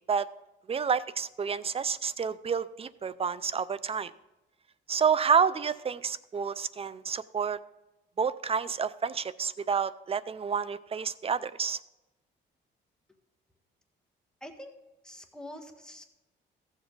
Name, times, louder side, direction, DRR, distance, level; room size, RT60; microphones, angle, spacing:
voice 1, 0.7-4.1 4.9-7.6 8.2-11.8, right 6 dB, 30° right, 18 dB, 0.4 m, -29 dB
voice 2, 14.4-14.7 15.0-16.0, left 1 dB, 5° left, 4 dB, 1.5 m, -45 dB
15.0 x 7.2 x 3.8 m, 0.99 s
cardioid pair, 90°, 20 cm